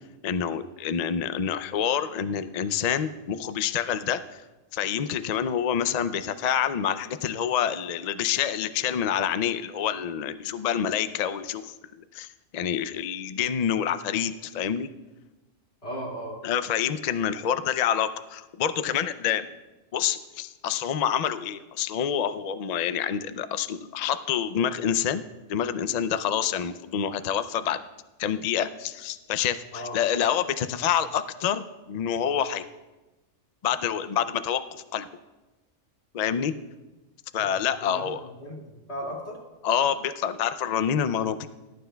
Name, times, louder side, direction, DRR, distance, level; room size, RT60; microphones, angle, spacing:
voice 1, 0.2-4.4 4.7-11.7 12.1-14.9 16.4-19.5 19.9-25.2 25.5-27.8 28.2-32.6 33.6-35.1 36.1-36.5 37.3-38.2 39.6-41.5, left 9 dB, 75° left, 11 dB, 0.3 m, -27 dB
voice 2, 15.8-16.4 29.7-30.0 37.8-38.1 38.4-39.4, equal, 55° left, -2 dB, 2.7 m, -36 dB
20.5 x 11.5 x 2.2 m, 1.1 s
omnidirectional pair, 1.3 m